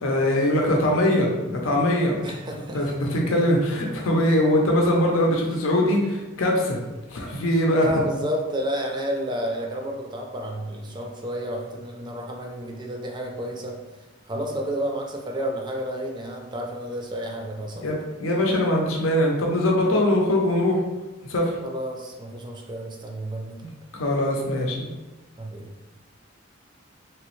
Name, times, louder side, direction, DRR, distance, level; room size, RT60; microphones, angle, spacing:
voice 1, 0.0-2.2 2.7-6.8 7.1-7.9 17.8-20.8 21.3-21.6 23.9-24.9, left 1 dB, 85° left, 0 dB, 0.7 m, -22 dB
voice 2, 2.2-2.8 7.8-13.8 14.3-17.8 21.6-23.6 25.4-25.7, equal, 20° right, 1 dB, 0.4 m, -31 dB
3.2 x 2.9 x 3.1 m, 1.1 s
head